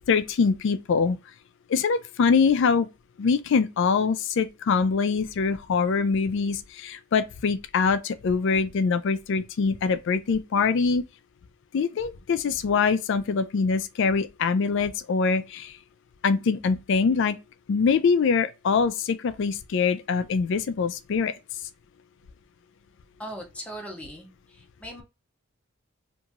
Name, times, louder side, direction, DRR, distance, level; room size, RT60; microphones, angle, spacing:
voice 1, 0.1-1.2 1.7-2.9 3.2-11.0 11.7-15.7 16.2-17.4 17.7-21.3, left 5 dB, 55° left, 0.3 m, -24 dB
voice 2, 23.2-24.3 24.8-25.0, equal, 5° left, 0.6 m, -38 dB
2.9 x 2.6 x 2.4 m
head